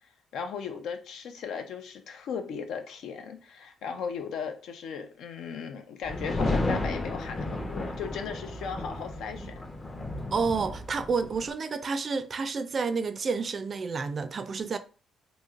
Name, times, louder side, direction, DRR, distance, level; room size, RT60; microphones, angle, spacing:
voice 1, 0.3-9.5, left 6 dB, 80° left, 0.5 m, -37 dB
sound 1, 6.1-11.5, left 2 dB, 25° left, 0.5 m, -33 dB
voice 2, 10.3-14.8, right 4 dB, 45° right, 0.3 m, -30 dB
3.0 x 2.7 x 2.4 m
cardioid pair, 90°, 0 cm